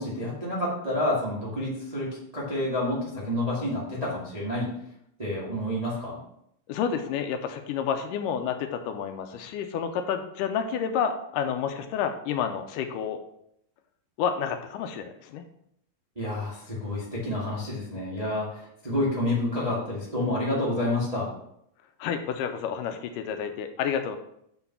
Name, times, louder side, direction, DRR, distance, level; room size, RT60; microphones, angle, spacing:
voice 1, 0.0-2.1 2.3-4.7 5.2-6.2 16.1-21.3, left 1 dB, 35° right, -6 dB, 0.5 m, -29 dB
voice 2, 6.7-13.2 14.2-15.4 22.0-24.2, left 7 dB, 80° left, 7 dB, 2.1 m, -30 dB
6.8 x 4.1 x 5.6 m, 0.74 s
omnidirectional pair, 3.9 m